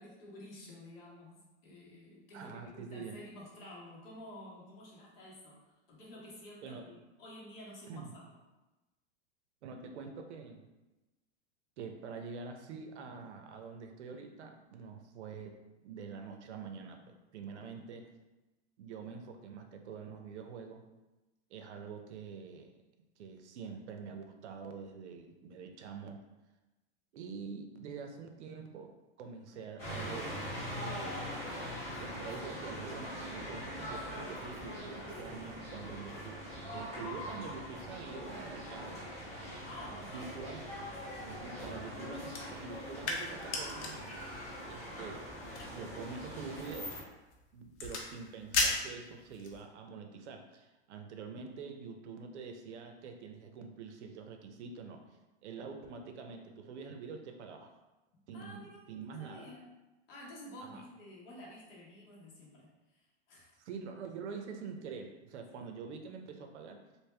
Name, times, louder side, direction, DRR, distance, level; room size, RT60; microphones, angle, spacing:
voice 1, 0.0-8.0 17.5-17.7 39.6-40.3 58.3-58.8 59.2-59.7 60.1-63.5 65.5-65.9, left 1 dB, 55° left, -5 dB, 1.4 m, -51 dB
voice 2, 2.3-3.2 6.6-6.9 7.9-8.1 9.6-10.7 11.8-15.5 15.8-18.0 18.8-20.9 21.5-22.7 23.2-26.2 27.1-31.2 32.0-36.4 36.7-39.0 40.0-40.6 41.3-44.0 44.7-45.2 45.7-47.0 47.5-55.0 55.4-57.7 58.3-59.5 60.6-60.8 63.6-66.8, right 5 dB, 85° right, 5 dB, 0.7 m, -46 dB
sound 1, 29.8-47.0, equal, 5° left, 1.1 m, -42 dB
sound 2, 42.3-49.6, left 3 dB, 80° left, 0.9 m, -39 dB
3.3 x 2.7 x 3.3 m, 1.1 s
supercardioid pair, 175°, 34 cm